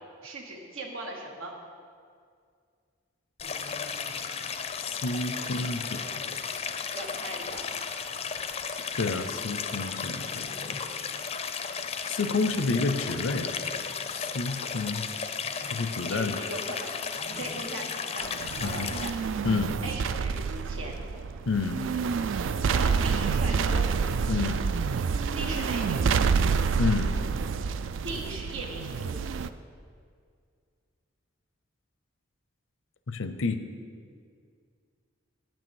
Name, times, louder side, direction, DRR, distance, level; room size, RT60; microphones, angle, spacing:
voice 1, 0.2-1.5 6.9-7.7 16.1-19.1 19.8-21.0 22.7-23.9 25.2-26.0 28.0-29.2, right 2 dB, 90° right, 0 dB, 1.2 m, -39 dB
Stream, 3.4-19.1, left 6 dB, 30° left, 0.4 m, -34 dB
voice 2, 4.8-6.0 6.3-6.4 9.0-10.8 12.1-13.5 14.1-15.0 15.7-16.4 18.6-18.9 19.4-19.7 21.5-21.9 24.3-24.7 26.8-27.2 33.1-33.6, left 3 dB, 80° left, 10 dB, 0.6 m, -29 dB
sound 1, 18.2-29.5, right 5 dB, 75° right, 0.3 m, -28 dB
8.9 x 6.2 x 7.1 m, 2.2 s
head